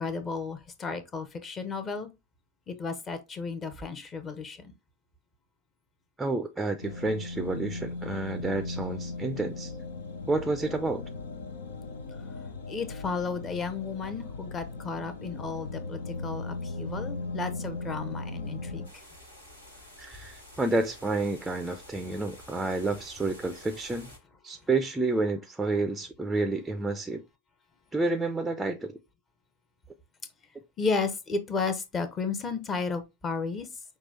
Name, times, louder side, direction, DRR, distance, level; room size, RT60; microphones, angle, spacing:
voice 1, 0.0-2.1 2.7-4.7 12.7-18.9 30.8-33.7, left 4 dB, 25° left, 0.8 m, -33 dB
voice 2, 6.2-9.7 10.3-11.0 20.0-24.1 24.4-27.2 27.9-28.9, right 2 dB, 5° right, 0.5 m, -30 dB
sound 1, 6.8-18.9, left 3 dB, 65° left, 0.7 m, -38 dB
sound 2, 18.8-24.2, left 1 dB, 80° left, 1.9 m, -50 dB
6.0 x 2.4 x 3.3 m
figure-of-eight pair, 90°, 0 cm